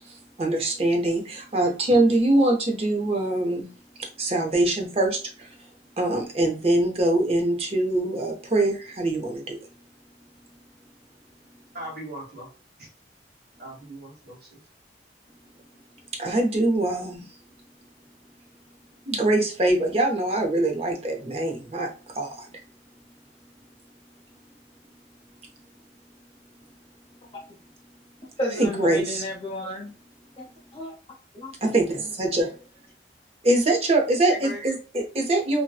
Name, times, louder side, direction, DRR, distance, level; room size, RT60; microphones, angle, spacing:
voice 1, 0.0-3.7 4.0-5.5 6.0-9.6 16.1-17.3 19.1-22.6 28.6-29.2 31.6-32.5 33.4-35.6, right 2 dB, 35° right, 3 dB, 0.6 m, -23 dB
voice 2, 11.7-12.5 12.8-12.9 13.6-14.6 34.3-34.6, right 1 dB, 60° right, -1 dB, 1.2 m, -38 dB
voice 3, 28.4-29.9 30.4-30.9 31.3-31.5, left 1 dB, 30° left, -2 dB, 0.8 m, -32 dB
2.6 x 2.1 x 2.3 m, 0.35 s
head